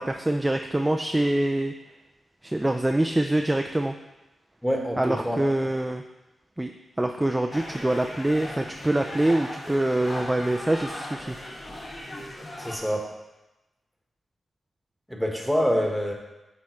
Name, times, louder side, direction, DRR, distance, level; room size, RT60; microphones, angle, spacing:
voice 1, 0.0-1.7 2.4-3.9 5.0-6.0 6.6-6.7 7.0-11.4, right 1 dB, 15° right, 4 dB, 0.3 m, -25 dB
voice 2, 4.6-5.4 12.6-13.1 15.1-16.1, equal, ahead, 0 dB, 1.2 m, -26 dB
sound 1, 7.5-12.8, left 1 dB, 45° left, 1.6 m, -38 dB
8.6 x 3.5 x 3.1 m, 1.0 s
cardioid pair, 55°, 0 cm